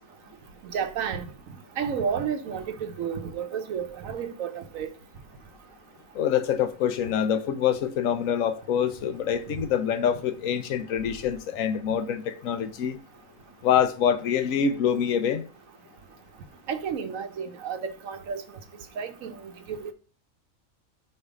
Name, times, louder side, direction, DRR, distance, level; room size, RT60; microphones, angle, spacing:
voice 1, 0.6-1.2 1.8-4.9 16.7-18.4 19.0-19.9, right 7 dB, 80° right, 1.1 m, -31 dB
voice 2, 6.1-13.0 13.6-15.4, left 8 dB, 75° left, 1.1 m, -25 dB
5.3 x 4.8 x 4.8 m
omnidirectional pair, 1.4 m